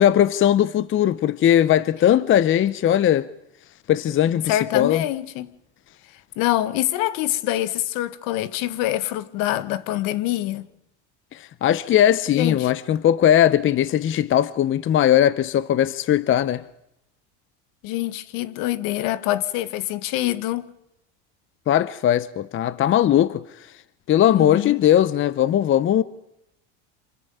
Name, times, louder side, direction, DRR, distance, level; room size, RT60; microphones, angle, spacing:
voice 1, 0.0-3.3 3.9-5.0 11.3-16.6 21.7-23.4 24.1-26.0, left 11 dB, 35° left, 0.8 m, -19 dB
voice 2, 4.5-5.5 6.4-10.6 12.4-12.7 17.8-20.7 24.3-24.8, left 14 dB, 65° left, 1.6 m, -25 dB
27.0 x 14.5 x 9.4 m
supercardioid pair, 110°, 36 cm